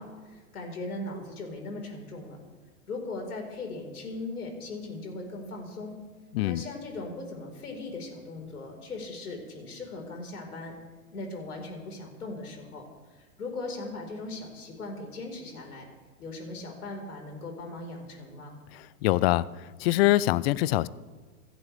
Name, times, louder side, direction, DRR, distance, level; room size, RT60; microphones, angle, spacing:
voice 1, 0.0-2.4 2.9-5.9 6.4-10.7 11.1-12.8 13.1-15.9 16.2-18.5, left 2 dB, 85° left, 2 dB, 4.7 m, -39 dB
voice 2, 18.7-19.5 19.8-20.9, left 16 dB, 45° left, 20 dB, 0.6 m, -24 dB
27.5 x 11.5 x 3.5 m, 1.5 s
hypercardioid pair, 115°, 44 cm